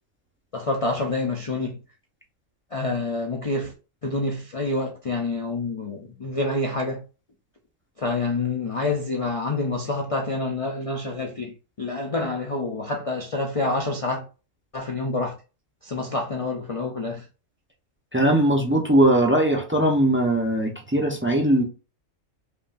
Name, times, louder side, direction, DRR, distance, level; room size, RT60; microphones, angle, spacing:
voice 1, 0.5-1.8 2.7-3.7 4.0-7.0 8.0-14.2 14.7-15.4 15.8-17.3, left 2 dB, 60° left, 0.3 m, -27 dB
voice 2, 18.1-21.6, right 1 dB, 10° right, 0.6 m, -20 dB
5.4 x 2.5 x 2.5 m
omnidirectional pair, 1.5 m